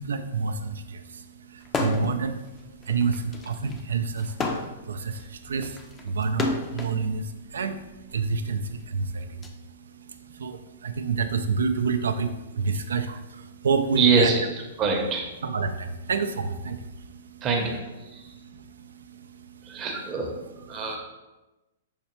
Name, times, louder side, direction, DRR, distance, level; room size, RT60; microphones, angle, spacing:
voice 1, 0.0-14.3 15.4-17.5 18.0-19.9 20.4-21.0, right 5 dB, 85° right, 8 dB, 0.3 m, -29 dB
sound 1, 1.7-2.2 2.6-7.0 7.8-9.5, left 3 dB, 20° left, 0.4 m, -31 dB
voice 2, 13.9-14.4 14.8-15.3 17.4-17.8 19.7-20.3 20.7-21.0, right 4 dB, 30° right, 1 dB, 0.7 m, -23 dB
5.6 x 2.1 x 3.0 m, 1.0 s
hypercardioid pair, 135°, 0 cm